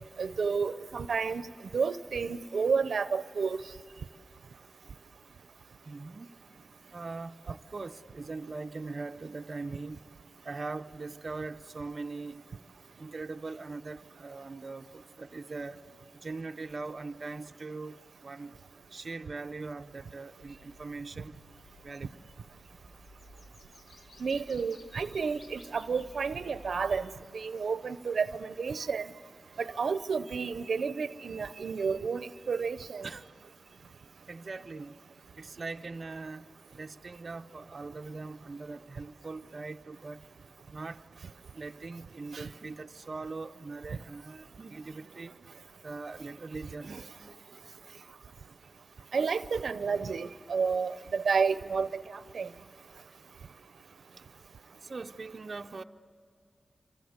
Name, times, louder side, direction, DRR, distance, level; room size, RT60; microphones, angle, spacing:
voice 1, 0.2-1.5 1.7-3.6 24.2-29.1 29.6-33.1 42.3-42.5 46.9-47.0 49.1-52.0 52.3-52.5, right 5 dB, 90° right, 0.7 m, -31 dB
voice 2, 5.8-6.3 6.9-10.0 10.4-12.4 13.0-15.8 16.1-18.5 18.9-21.4 21.8-22.1 33.0-33.2 34.3-35.0 35.4-36.5 36.7-40.2 40.7-41.0 41.5-45.3 45.8-47.0 54.8-55.8, right 3 dB, 50° right, 0.7 m, -41 dB
sound 1, 20.4-27.0, equal, 85° left, 3.4 m, -54 dB
27.0 x 25.5 x 8.1 m
wide cardioid pair, 90°, 0 cm